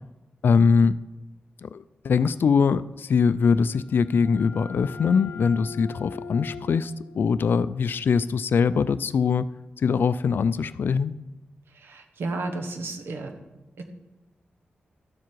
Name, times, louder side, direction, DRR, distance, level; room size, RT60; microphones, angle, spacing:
voice 1, 0.4-1.0 1.6-9.5 9.8-11.1, left 5 dB, 65° left, 15 dB, 0.4 m, -22 dB
sound 1, 3.5-9.0, left 4 dB, 85° left, 0.8 m, -42 dB
voice 2, 11.7-13.3 13.8-13.9, right 2 dB, 85° right, 4 dB, 1.3 m, -33 dB
13.0 x 7.4 x 4.7 m, 1.0 s
wide cardioid pair, 100°, 4 cm